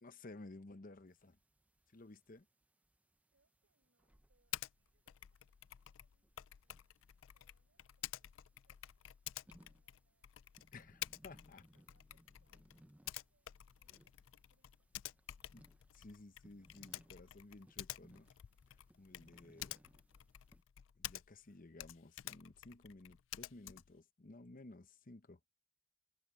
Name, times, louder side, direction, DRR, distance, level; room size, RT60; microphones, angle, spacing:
voice 1, 0.0-1.4 1.9-2.5 10.7-11.6 15.5-15.7 15.9-18.3 19.0-19.7 21.0-25.4, left 2 dB, 45° left, 0.9 m, -55 dB
sound 1, 1.1-20.6, right 1 dB, 10° right, 0.6 m, -69 dB
voice 2, 3.3-6.9 7.3-10.3 10.6-11.2 11.6-15.0 19.2-20.3, right 2 dB, 75° right, 7.6 m, -84 dB
Typing, 4.5-4.7 5.1-21.5 21.8-24.0, left 14 dB, 85° left, 0.4 m, -50 dB
head